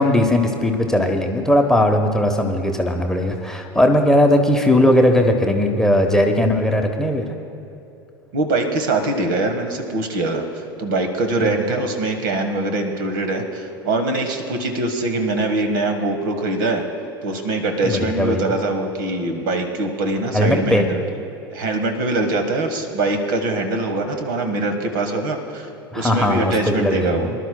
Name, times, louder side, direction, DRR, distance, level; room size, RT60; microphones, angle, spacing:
voice 1, 0.0-7.3 11.4-11.6 17.8-18.5 20.3-20.8 25.9-27.3, left 1 dB, 5° left, 3 dB, 1.0 m, -18 dB
voice 2, 8.3-16.8 17.2-21.0 21.5-25.7 25.9-27.3, right 2 dB, 60° right, 5 dB, 1.4 m, -23 dB
24.0 x 12.0 x 2.2 m, 2.8 s
figure-of-eight pair, 80°, 13 cm